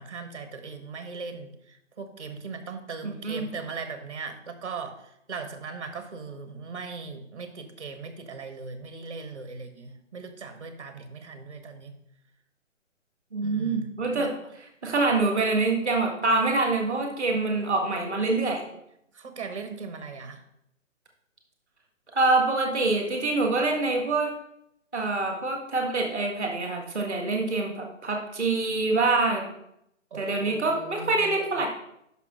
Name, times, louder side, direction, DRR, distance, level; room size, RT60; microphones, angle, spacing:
voice 1, 0.0-11.9 13.4-14.3 19.1-20.4 30.1-31.6, right 4 dB, 25° right, 8 dB, 0.6 m, -39 dB
voice 2, 13.3-14.3 14.8-18.6 22.1-24.3 24.9-29.4 30.1-31.7, right 3 dB, 10° left, 1 dB, 0.7 m, -25 dB
5.9 x 5.7 x 6.1 m, 0.78 s
hypercardioid pair, 170°, 39 cm